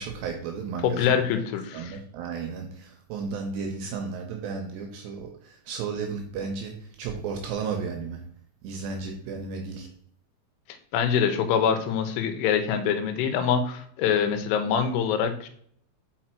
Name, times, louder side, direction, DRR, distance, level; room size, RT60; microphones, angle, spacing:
voice 1, 0.0-1.2 1.7-8.2 8.6-9.9, right 5 dB, 75° right, 3 dB, 2.6 m, -34 dB
voice 2, 0.8-2.0 10.9-15.5, left 7 dB, 85° left, 7 dB, 3.3 m, -24 dB
6.1 x 5.5 x 4.4 m, 0.62 s
omnidirectional pair, 5.6 m